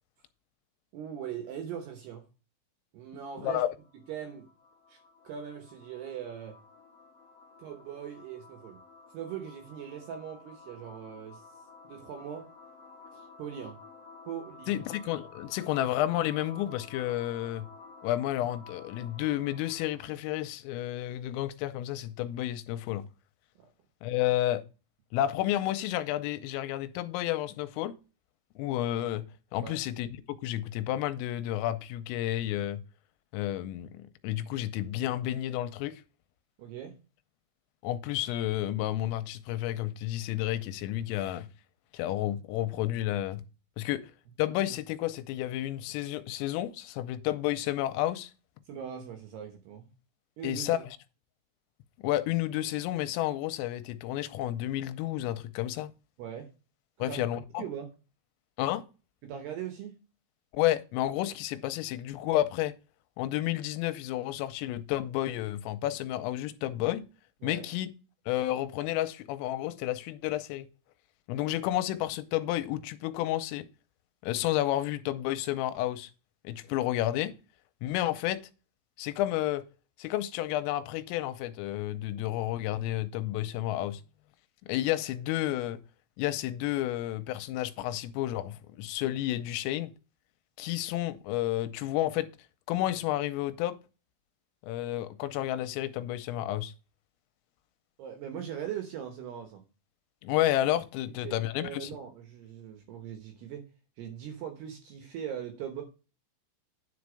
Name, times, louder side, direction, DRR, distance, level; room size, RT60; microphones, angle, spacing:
voice 1, 0.9-2.3 2.9-3.6 4.1-4.5 4.9-5.0 5.2-6.6 7.6-8.8 9.1-11.5 11.8-12.5 13.1-13.8 14.3-14.7 23.6-23.7 29.6-29.8 36.6-37.0 48.7-49.9 50.4-50.7 56.2-56.5 57.0-57.2 57.6-57.9 59.2-60.0 67.4-67.7 98.0-99.6 101.1-103.6 104.0-105.8, right 9 dB, 70° right, 2.5 m, -40 dB
sound 1, 3.7-20.1, left 4 dB, 65° left, 1.3 m, -52 dB
voice 2, 14.7-17.7 18.0-23.0 24.0-24.6 25.1-27.9 28.6-29.2 29.5-32.8 33.3-36.0 37.8-41.5 41.9-43.4 43.8-44.1 44.4-48.3 50.4-50.8 52.0-55.9 57.0-57.7 58.6-58.9 60.5-62.8 63.2-67.0 67.4-67.9 68.3-70.7 71.3-73.7 74.2-76.1 76.4-77.3 77.8-78.4 79.0-79.7 80.0-84.0 84.6-85.8 86.2-89.9 90.6-92.3 92.7-93.8 94.6-96.7 100.2-101.9, left 14 dB, 85° left, 3.2 m, -31 dB
10.0 x 5.2 x 4.9 m
omnidirectional pair, 6.0 m